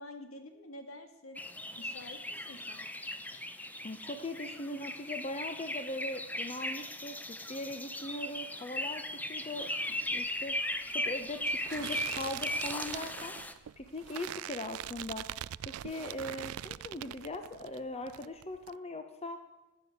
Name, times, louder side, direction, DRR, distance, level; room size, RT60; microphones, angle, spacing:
voice 1, 0.0-1.4 1.8-2.9, left 1 dB, 75° left, 6 dB, 2.3 m, -48 dB
sound 1, 1.3-13.5, left 1 dB, 10° left, 0.9 m, -38 dB
voice 2, 3.8-9.7 10.1-10.6 10.9-13.4 13.8-15.3 15.6-19.4, left 1 dB, 30° left, 7 dB, 1.1 m, -40 dB
sound 2, 10.1-17.8 18.1-18.7, right 12 dB, 80° right, 0.4 m, -43 dB
15.0 x 9.4 x 8.0 m, 1.1 s
head